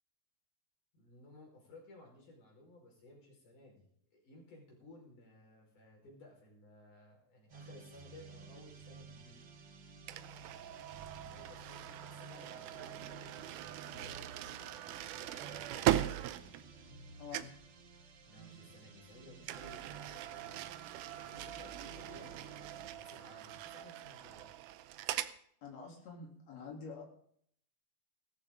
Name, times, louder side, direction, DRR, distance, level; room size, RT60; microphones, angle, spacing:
voice 1, 0.9-9.5 11.2-13.6 13.9-16.5 18.2-20.7 21.0-24.5, left 1 dB, 80° left, 0 dB, 6.6 m, -58 dB
sound 1, 7.5-22.9, right 4 dB, 50° right, 1.6 m, -54 dB
sound 2, 10.1-17.1 17.3-17.7 19.4-25.4, right 13 dB, 90° right, 2.3 m, -40 dB
voice 2, 17.2-17.5 25.6-27.0, left 5 dB, 60° left, -1 dB, 4.4 m, -47 dB
17.0 x 14.0 x 3.8 m, 0.64 s
omnidirectional pair, 3.5 m